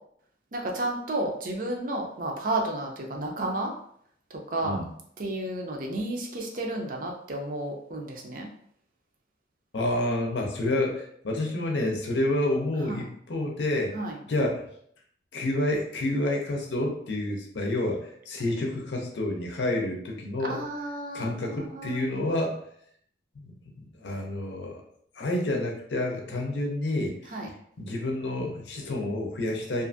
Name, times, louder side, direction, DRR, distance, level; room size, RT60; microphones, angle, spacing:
voice 1, 0.5-3.7 4.5-4.8 5.2-8.5 12.9-13.0 13.9-14.1 20.4-22.0 27.3-27.5, right 1 dB, 45° right, 1 dB, 0.5 m, -32 dB
voice 2, 9.7-14.0 14.3-14.6 15.3-20.6 21.1-22.6 23.4-23.5 23.8-24.8 25.2-27.3 27.8-29.9, left 1 dB, 70° left, 0 dB, 0.6 m, -29 dB
2.5 x 2.5 x 2.5 m, 0.67 s
head